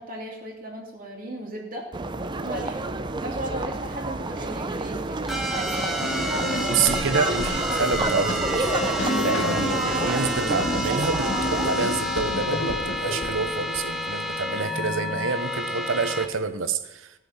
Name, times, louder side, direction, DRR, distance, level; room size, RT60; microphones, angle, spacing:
voice 1, 0.0-1.9 2.4-2.8 3.2-6.5 9.0-9.3, right 1 dB, 45° right, 0 dB, 2.6 m, -36 dB
sound 1, 1.9-11.7, right 2 dB, 25° right, 0.5 m, -30 dB
sound 2, 5.3-16.3, equal, ahead, 1.3 m, -29 dB
sound 3, 6.0-14.3, left 1 dB, 65° left, 1.9 m, -31 dB
voice 2, 6.7-8.7 9.2-17.1, right 5 dB, 75° right, 11 dB, 0.8 m, -28 dB
17.0 x 6.2 x 5.7 m, 0.95 s
head